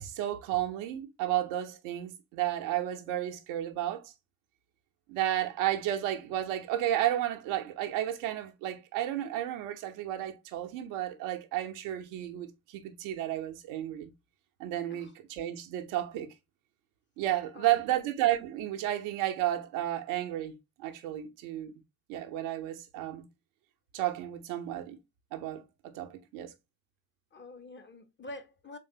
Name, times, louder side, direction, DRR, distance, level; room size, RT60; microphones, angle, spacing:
voice 1, 0.0-4.1 5.1-14.1 14.6-16.3 17.2-21.7 22.1-23.3 23.9-25.0 25.3-26.5, right 13 dB, 70° right, 0.7 m, -32 dB
voice 2, 17.5-18.1 27.3-28.8, left 2 dB, 25° left, 0.7 m, -47 dB
4.0 x 3.2 x 2.7 m
hypercardioid pair, 45°, 50 cm